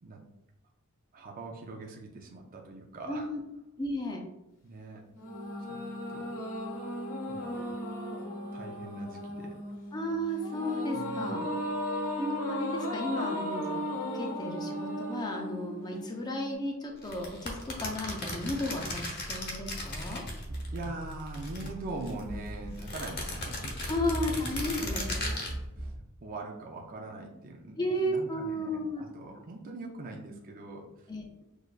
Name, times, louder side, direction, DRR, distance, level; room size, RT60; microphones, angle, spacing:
voice 1, 1.1-3.3 4.6-5.1 5.7-5.8 6.1-6.6 7.3-7.8 8.5-9.5 10.9-11.6 20.7-23.9 25.1-25.9 26.2-31.1, right 2 dB, 40° right, 0 dB, 0.5 m, -42 dB
voice 2, 3.1-3.4 3.8-4.2 9.9-11.4 12.2-13.8 14.1-20.2 23.9-25.1 27.8-29.0 31.1-31.2, left 1 dB, 20° left, 1 dB, 0.6 m, -33 dB
sound 1, 5.1-16.5, equal, 85° left, 1.4 m, -36 dB
sound 2, 17.0-20.8 21.1-22.2 22.8-25.5, left 2 dB, 50° left, 1.0 m, -37 dB
sound 3, 19.2-26.0, right 1 dB, 70° right, 0.8 m, -40 dB
6.3 x 2.5 x 2.4 m, 0.88 s
head